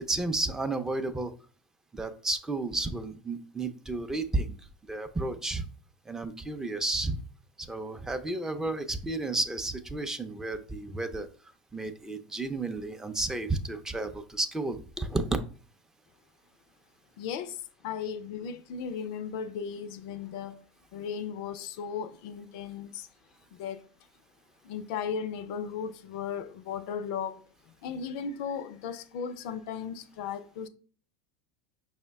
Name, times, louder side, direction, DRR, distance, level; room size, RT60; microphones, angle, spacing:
voice 1, 0.1-1.3 1.9-4.5 4.9-5.7 6.1-7.2 7.7-11.3 11.7-15.3, right 2 dB, 10° right, 0.4 m, -32 dB
voice 2, 17.2-20.6 20.9-23.1 23.5-23.9 24.6-27.4 27.8-30.7, left 7 dB, 65° left, 0.3 m, -36 dB
5.2 x 2.1 x 3.4 m
hypercardioid pair, 90°, 4 cm